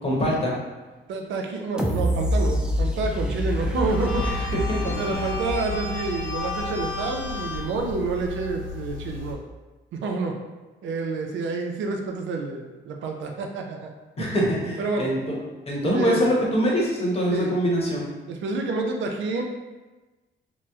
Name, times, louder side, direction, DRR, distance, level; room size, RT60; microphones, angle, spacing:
voice 1, 0.0-0.5 4.2-4.8 5.1-5.3 14.2-15.4 15.7-18.0, equal, 30° left, -4 dB, 1.0 m, -24 dB
voice 2, 1.1-4.3 4.8-9.4 9.9-10.3 10.8-13.9 14.2-14.4 14.8-15.1 15.9-16.3 17.3-17.6 18.3-19.4, right 3 dB, 70° right, 2 dB, 0.5 m, -28 dB
sound 1, 1.8-6.7 7.1-7.2, equal, 5° right, 0.3 m, -27 dB
sound 2, 3.9-9.3, left 3 dB, 75° left, 0.8 m, -33 dB
2.9 x 2.0 x 3.4 m, 1.2 s
cardioid pair, 90°, 20 cm